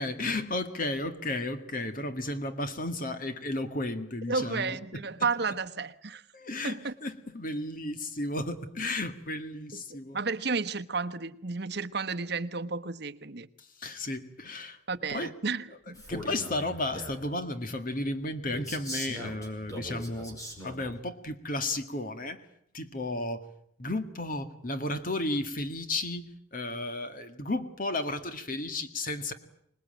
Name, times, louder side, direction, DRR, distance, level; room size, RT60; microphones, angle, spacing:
voice 1, 0.0-5.1 6.3-10.2 13.6-14.8 15.1-15.3 16.1-22.4 22.7-23.4 23.8-29.3, left 2 dB, 45° left, 2.0 m, -33 dB
voice 2, 4.3-6.2 6.6-6.9 9.7-13.5 14.9-16.0, right 4 dB, 60° right, 1.1 m, -32 dB
Male speech man speaking, 15.9-17.3 18.5-20.9, equal, 20° left, 5.3 m, -40 dB
26.0 x 20.0 x 9.1 m
head